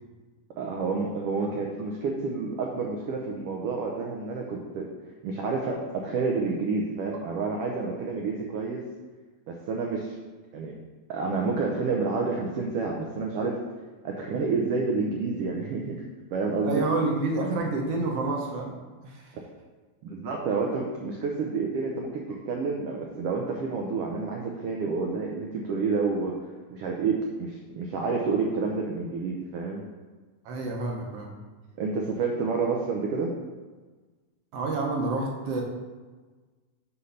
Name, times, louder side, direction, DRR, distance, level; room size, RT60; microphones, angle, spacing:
voice 1, 0.6-4.9 5.2-8.8 9.5-10.2 10.5-10.7 11.1-13.6 14.0-16.8 20.0-26.4 26.7-29.9 31.8-33.3, right 4 dB, 90° right, 0 dB, 1.3 m, -29 dB
voice 2, 16.6-18.7 19.0-19.3 30.4-31.3 34.5-35.6, right 3 dB, 70° right, 0 dB, 1.6 m, -28 dB
8.1 x 3.2 x 5.4 m, 1.3 s
omnidirectional pair, 3.4 m